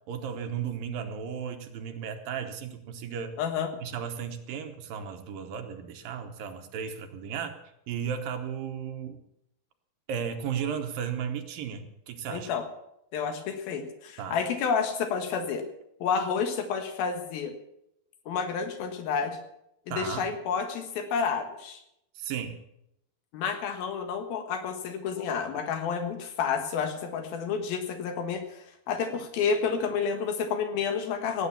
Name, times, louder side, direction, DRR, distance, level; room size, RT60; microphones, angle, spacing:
voice 1, 0.1-3.4 3.8-7.6 7.9-9.2 10.1-12.5 14.2-14.4 19.9-20.3 22.2-22.6, right 7 dB, 75° right, 5 dB, 2.7 m, -35 dB
voice 2, 3.4-3.7 12.3-12.7 13.1-15.6 16.0-17.5 18.3-19.4 19.9-21.8 23.3-31.5, left 6 dB, 75° left, 7 dB, 3.4 m, -30 dB
17.5 x 9.1 x 7.1 m, 0.80 s
omnidirectional pair, 4.3 m